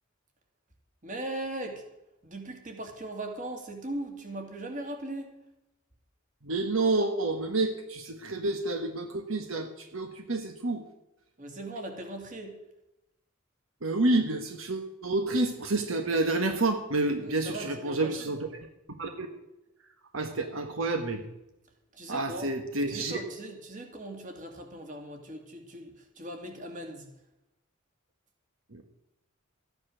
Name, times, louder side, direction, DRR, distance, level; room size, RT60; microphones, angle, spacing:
voice 1, 1.0-1.8 2.2-5.3 11.4-12.5 17.2-18.4 21.9-22.5 22.9-27.1, right 1 dB, 40° right, 4 dB, 2.4 m, -39 dB
voice 2, 6.4-10.8 13.8-18.5 19.0-19.3 20.1-21.2 22.1-23.2 28.7-28.8, right 2 dB, 75° right, 5 dB, 1.4 m, -29 dB
14.0 x 9.7 x 6.3 m, 0.91 s
head